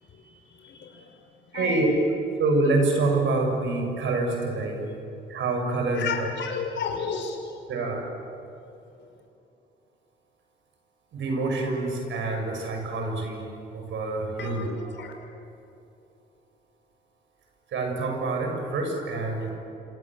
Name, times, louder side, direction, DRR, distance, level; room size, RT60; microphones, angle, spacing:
voice 1, 0.2-1.2 1.5-1.8 4.8-4.9 6.0-7.5 14.4-15.1, left 6 dB, 65° left, 3 dB, 5.5 m, -33 dB
voice 2, 1.5-1.9 2.4-4.8 5.3-6.3 7.7-8.0 11.1-13.4 13.7-14.7 17.7-19.5, right 3 dB, 70° right, 3 dB, 7.2 m, -26 dB
27.0 x 27.0 x 7.8 m, 2.8 s
cardioid pair, 90°, 20 cm